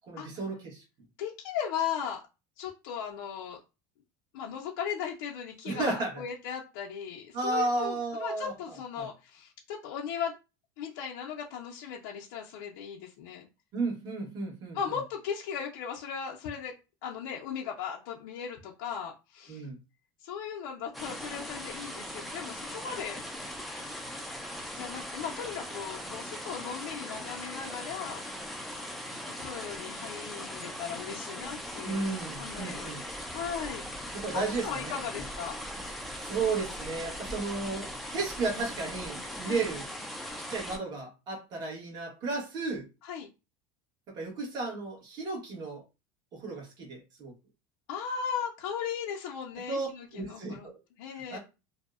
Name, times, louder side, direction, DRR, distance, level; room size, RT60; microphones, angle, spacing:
voice 1, 0.1-0.8 5.6-6.2 7.3-8.5 9.0-9.1 13.7-14.8 19.5-19.8 31.8-33.0 34.1-35.2 36.2-39.9 40.4-42.8 44.1-45.8 46.3-47.3 49.7-49.9 50.1-50.8 51.3-51.4, right 3 dB, 35° right, -2 dB, 1.1 m, -33 dB
voice 2, 1.2-2.2 2.6-3.6 4.3-10.3 10.8-13.5 14.7-16.7 17.0-19.7 20.2-23.2 24.7-28.2 29.3-32.0 32.4-33.0 33.3-33.8 34.3-35.6 39.4-39.7 43.0-43.3 47.9-50.7 51.0-51.4, left 7 dB, 80° left, -2 dB, 0.4 m, -37 dB
sound 1, 20.9-40.8, equal, ahead, 0.3 m, -40 dB
2.6 x 2.0 x 2.3 m, 0.29 s
cardioid pair, 150°, 11 cm